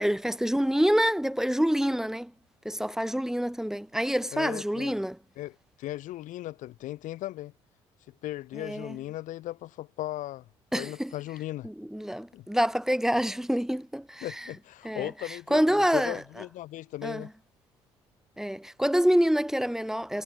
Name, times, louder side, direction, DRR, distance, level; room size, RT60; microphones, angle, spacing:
voice 1, 0.0-2.3 2.6-5.2 8.6-9.0 10.7-11.1 11.6-14.3 14.8-16.2 17.0-17.3 18.4-20.2, equal, 5° right, 3.1 m, -27 dB
voice 2, 4.3-5.0 5.4-7.5 8.1-10.5 10.8-11.7 12.3-12.5 14.2-15.6 15.9-17.3, left 15 dB, 65° left, 4.2 m, -37 dB
hypercardioid pair, 50°, 14 cm